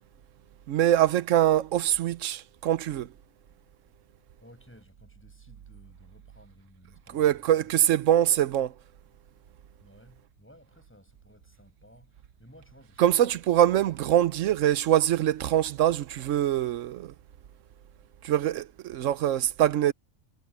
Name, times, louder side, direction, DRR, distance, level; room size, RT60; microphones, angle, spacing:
voice 1, 0.7-3.1 7.1-8.7 13.0-17.1 18.2-19.9, right 11 dB, 90° right, 1.1 m, -24 dB
voice 2, 4.4-7.7 9.8-13.0, equal, 10° left, 6.7 m, -56 dB
omnidirectional pair, 1.3 m